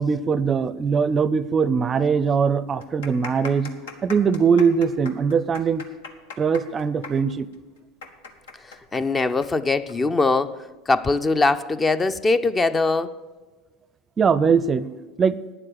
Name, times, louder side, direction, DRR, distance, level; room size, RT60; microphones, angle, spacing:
voice 1, 0.0-3.7 4.0-5.8 6.4-7.5 14.2-14.9 15.2-15.4, right 6 dB, 30° right, 0.5 m, -21 dB
sound 1, 1.6-1.7 2.0-2.1 2.7-9.9 10.2-10.3 11.1-11.4, left 4 dB, 85° left, 1.3 m, -39 dB
voice 2, 8.6-13.2, left 3 dB, 20° left, 0.5 m, -22 dB
9.8 x 7.6 x 7.8 m
hypercardioid pair, 95°, 0 cm